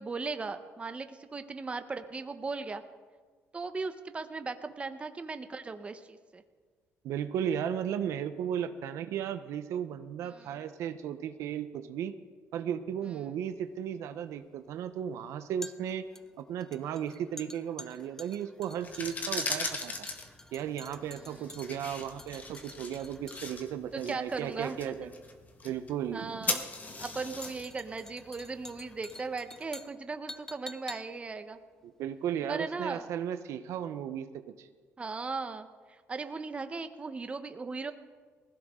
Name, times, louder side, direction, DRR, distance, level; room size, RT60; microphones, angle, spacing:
voice 1, 0.0-2.8 3.5-6.4 10.2-10.5 21.1-21.5 23.9-24.9 26.1-26.6 27.0-31.6 32.5-33.1 35.0-37.9, right 4 dB, 25° right, 9 dB, 1.0 m, -38 dB
voice 2, 7.0-12.1 12.5-16.1 16.4-19.9 20.5-25.1 25.6-26.4 31.8-34.3 34.6-34.7, right 9 dB, 75° right, 10 dB, 0.8 m, -35 dB
sound 1, 13.5-32.7 33.0-33.1, left 1 dB, 10° left, 0.6 m, -50 dB
sound 2, 18.7-29.6, left 3 dB, 30° left, 1.7 m, -39 dB
20.0 x 15.5 x 3.8 m, 1.5 s
cardioid pair, 105°, 5 cm